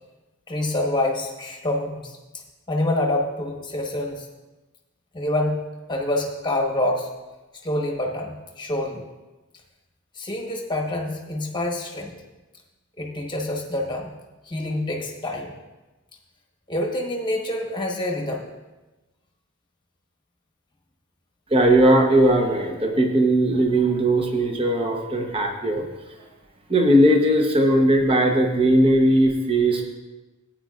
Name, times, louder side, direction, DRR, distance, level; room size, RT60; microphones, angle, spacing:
voice 1, 0.5-2.2 2.7-4.3 5.1-5.6 5.9-7.1 7.6-9.1 10.1-12.1 13.0-14.1 14.4-15.5 16.7-18.4, left 1 dB, 20° left, 0 dB, 1.1 m, -26 dB
voice 2, 21.5-25.9 26.7-29.9, right 1 dB, 25° right, 3 dB, 0.9 m, -18 dB
14.5 x 9.0 x 2.4 m, 1.1 s
head